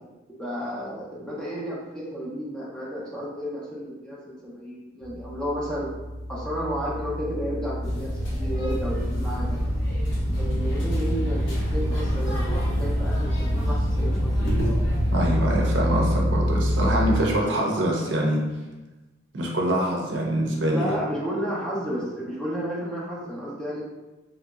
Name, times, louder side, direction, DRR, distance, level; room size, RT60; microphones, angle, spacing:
voice 1, 0.4-5.9 6.3-9.6 10.2-14.3 20.7-23.8, equal, 5° left, -6 dB, 0.5 m, -32 dB
sound 1, 5.0-17.2, equal, 40° left, 0.9 m, -27 dB
sound 2, 7.8-15.3, equal, 70° left, 0.9 m, -29 dB
voice 2, 15.1-18.4 19.3-20.9, right 1 dB, 65° right, -1 dB, 0.6 m, -24 dB
3.0 x 2.7 x 2.3 m, 1.1 s
head